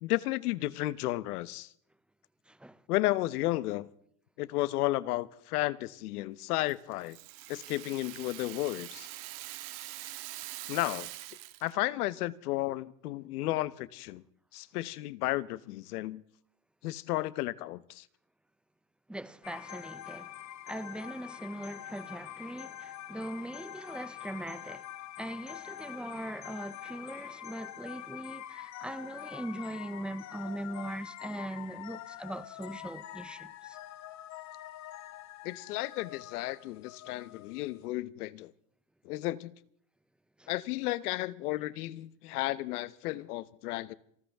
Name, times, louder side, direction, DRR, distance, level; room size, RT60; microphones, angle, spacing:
voice 1, 0.0-1.7 2.9-3.9 4.4-7.2 7.5-9.1 10.7-11.1 11.6-14.2 14.5-16.2 16.8-18.0 35.4-38.5 39.0-39.5 40.5-43.9, left 17 dB, 85° left, 1.0 m, -33 dB
voice 2, 2.5-2.8 19.1-24.9 25.2-33.8 40.4-40.5, right 1 dB, ahead, 0.5 m, -41 dB
Rattle (instrument), 6.7-11.8, right 17 dB, 65° right, 1.7 m, -44 dB
sound 1, 19.4-37.8, left 12 dB, 40° left, 1.2 m, -45 dB
27.5 x 13.5 x 3.5 m
supercardioid pair, 130°, 44 cm